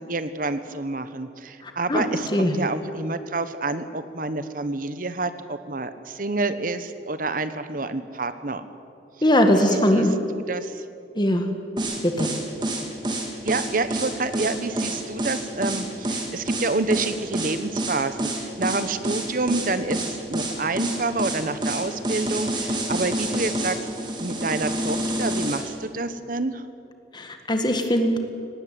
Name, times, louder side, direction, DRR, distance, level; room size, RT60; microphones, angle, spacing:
voice 1, 0.0-8.6 9.5-10.8 13.4-23.8 24.2-26.6, right 3 dB, 50° right, 11 dB, 1.1 m, -28 dB
voice 2, 9.2-10.1 11.2-11.5 12.0-12.3 27.1-28.2, equal, 25° left, 6 dB, 1.7 m, -20 dB
sound 1, 11.8-25.6, right 1 dB, 25° right, 3.1 m, -27 dB
18.5 x 17.5 x 9.3 m, 2.5 s
head